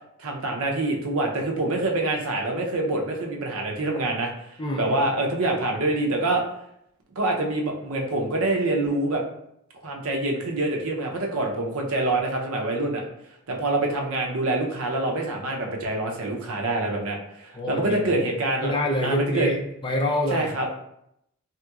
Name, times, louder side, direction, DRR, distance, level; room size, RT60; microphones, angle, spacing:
voice 1, 0.2-6.4 7.2-9.2 9.8-13.0 13.5-18.7 19.0-19.5 20.3-20.7, right 2 dB, 70° right, 1 dB, 0.6 m, -26 dB
voice 2, 4.6-4.9 17.5-18.2 18.6-20.5, left 1 dB, 20° left, 0 dB, 0.4 m, -26 dB
3.3 x 2.9 x 2.3 m, 0.78 s
head